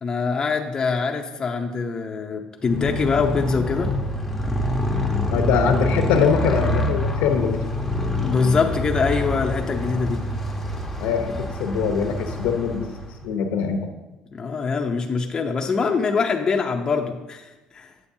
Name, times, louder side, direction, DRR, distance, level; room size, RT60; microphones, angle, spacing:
voice 1, 0.0-3.9 8.2-10.2 14.3-17.9, left 5 dB, 25° left, 2 dB, 0.6 m, -24 dB
Motorcycle, 2.6-13.3, left 1 dB, 5° left, 0.8 m, -26 dB
voice 2, 5.3-7.6 11.0-12.9 13.2-13.9, left 6 dB, 90° left, 4 dB, 0.7 m, -22 dB
8.4 x 7.5 x 2.7 m, 1.1 s
cardioid pair, 130°, 3 cm